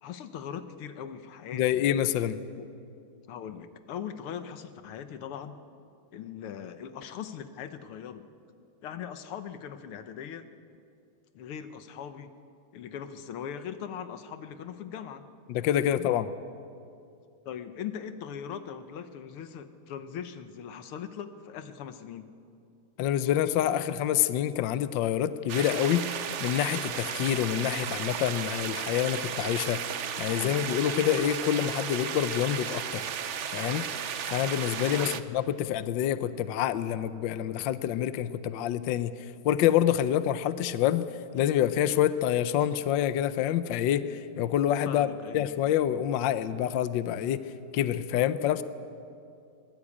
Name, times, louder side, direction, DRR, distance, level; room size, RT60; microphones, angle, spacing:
voice 1, 0.0-1.9 2.6-2.7 3.3-5.6 6.1-8.3 8.8-10.5 11.4-12.3 12.7-15.2 15.8-16.1 17.5-22.3 30.3-30.6 34.9-35.2 44.8-45.5, left 8 dB, 85° left, 10 dB, 2.0 m, -40 dB
voice 2, 1.5-2.4 15.5-16.3 23.0-26.1 26.4-29.8 30.2-33.0 33.5-33.9 34.3-39.1 39.4-45.1 45.3-48.6, left 11 dB, 70° left, 13 dB, 1.3 m, -27 dB
sound 1, 25.5-35.2, right 8 dB, 80° right, 0.6 m, -34 dB
22.5 x 20.0 x 8.6 m, 2.5 s
omnidirectional pair, 2.4 m